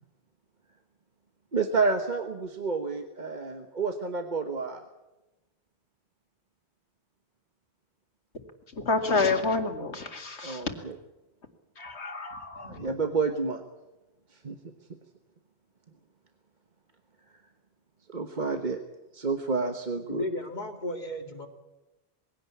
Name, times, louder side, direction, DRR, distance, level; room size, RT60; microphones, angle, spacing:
voice 1, 1.5-4.8 10.4-11.0 12.6-13.6 14.3-14.6 18.1-18.8 19.1-20.3, right 4 dB, 45° right, 6 dB, 1.3 m, -30 dB
voice 2, 8.8-10.6 11.8-12.9, left 3 dB, 85° left, 5 dB, 2.5 m, -29 dB
voice 3, 20.1-21.5, left 1 dB, 40° left, 5 dB, 2.4 m, -34 dB
21.5 x 16.5 x 8.5 m, 1.0 s
omnidirectional pair, 1.1 m